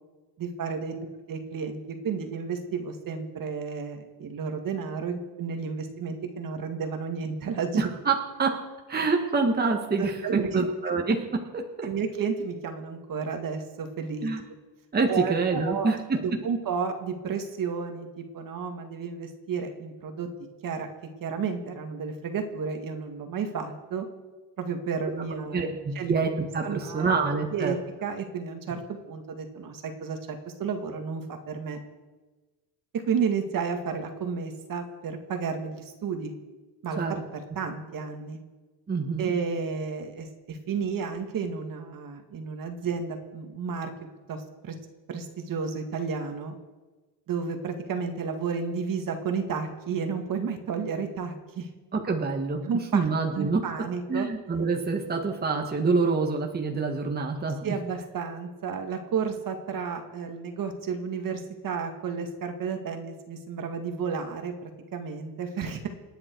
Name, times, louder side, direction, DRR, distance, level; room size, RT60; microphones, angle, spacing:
voice 1, 0.4-1.0 1.3-7.8 10.0-10.9 11.8-14.3 15.1-20.3 20.6-20.9 21.2-24.1 24.6-26.1 26.6-27.1 27.5-27.8 28.0-28.8 29.1-31.8 32.9-36.3 36.8-37.0 37.6-38.4 39.2-43.9 44.3-44.7 45.1-46.5 47.3-51.7 52.7-53.1 53.3-54.3 57.6-65.9, right 6 dB, 45° right, 5 dB, 2.1 m, -32 dB
voice 2, 7.8-8.5 8.9-11.9 14.2-14.4 14.9-16.2 25.5-27.7 37.0-37.1 38.9-39.3 51.9-53.6 54.1-57.7, right 4 dB, 20° right, 2 dB, 1.7 m, -26 dB
28.0 x 9.7 x 4.7 m, 1.3 s
cardioid pair, 125°, 46 cm